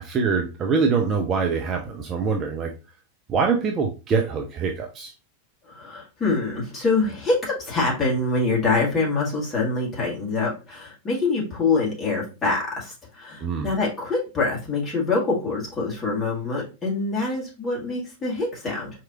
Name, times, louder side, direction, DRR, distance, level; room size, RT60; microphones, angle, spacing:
voice 1, 0.0-2.7 3.3-5.1 13.4-13.7, right 5 dB, 25° right, 0.6 m, -24 dB
voice 2, 5.6-18.9, left 3 dB, 15° left, 1.8 m, -25 dB
4.6 x 2.9 x 2.4 m
figure-of-eight pair, 90°, 0 cm